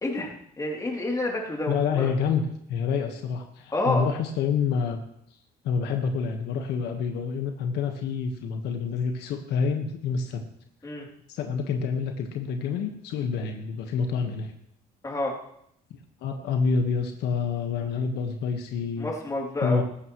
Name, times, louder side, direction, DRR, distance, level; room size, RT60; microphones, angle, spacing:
voice 1, 0.0-2.1 3.7-4.0 10.8-11.0 15.0-15.4 19.0-19.8, left 2 dB, 20° left, -1 dB, 3.2 m, -29 dB
voice 2, 1.7-5.0 5.6-10.4 11.3-14.5 16.2-19.1 19.6-19.8, left 5 dB, 80° left, 4 dB, 1.5 m, -27 dB
18.0 x 14.5 x 3.2 m, 0.73 s
cardioid pair, 110°, 17 cm